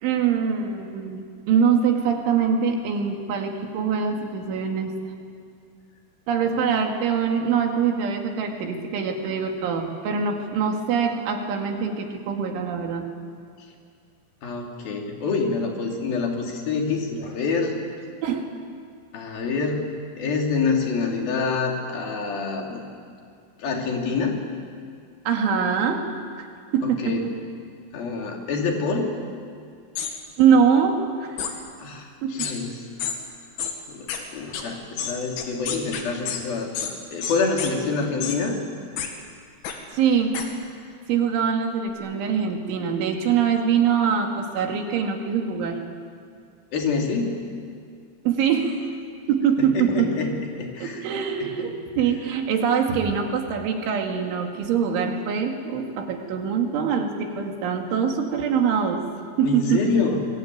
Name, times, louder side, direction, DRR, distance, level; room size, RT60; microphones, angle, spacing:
voice 1, 0.0-4.9 6.3-13.1 18.2-18.5 25.3-26.0 26.4-26.5 26.7-27.3 30.4-31.4 32.2-32.5 39.9-40.4 41.1-45.8 48.3-48.8 49.3-50.1 50.8-59.0 59.4-59.9, right 7 dB, 80° right, 3 dB, 4.7 m, -23 dB
voice 2, 14.4-17.8 19.1-19.8 20.2-22.8 23.6-24.4 26.8-27.2 27.9-29.1 31.8-32.8 33.9-38.6 46.7-47.4 49.6-51.0 51.4-51.8 59.4-60.3, left 4 dB, 55° left, 1 dB, 4.6 m, -27 dB
sound 1, 30.0-30.1 31.4-31.5 32.4-32.5 33.0-33.2 33.6-33.7 34.1-34.2 34.5-34.6 35.0-36.4 36.8-36.9 37.2-37.7 38.2-38.4 39.0-39.1 39.7-39.8 40.3-40.5, left 8 dB, 85° left, 4.6 m, -29 dB
27.0 x 22.0 x 9.4 m, 2.2 s
omnidirectional pair, 5.4 m